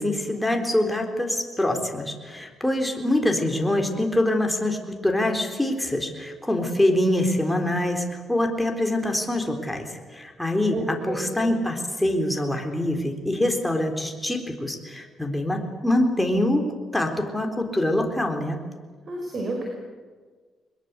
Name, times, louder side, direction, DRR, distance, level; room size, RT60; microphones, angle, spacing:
voice 1, 0.0-18.6, left 1 dB, 5° left, 3 dB, 3.9 m, -25 dB
voice 2, 10.7-11.5 19.1-19.7, right 2 dB, 45° right, 1 dB, 5.2 m, -31 dB
22.5 x 21.5 x 8.2 m, 1.5 s
cardioid pair, 90°, 0 cm